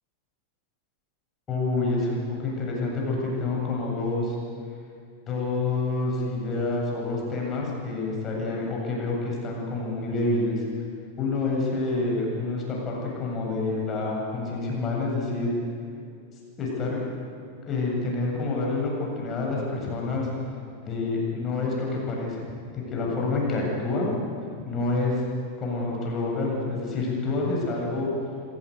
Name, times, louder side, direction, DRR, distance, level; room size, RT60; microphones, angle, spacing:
voice 1, 1.5-4.4 5.3-10.6 11.2-15.5 16.6-17.0 17.7-20.3 20.8-22.4 22.7-24.1 24.6-25.2 25.6-28.1, left 3 dB, 25° left, -2 dB, 7.9 m, -28 dB
27.0 x 17.0 x 8.1 m, 2.3 s
figure-of-eight pair, 90°, 0 cm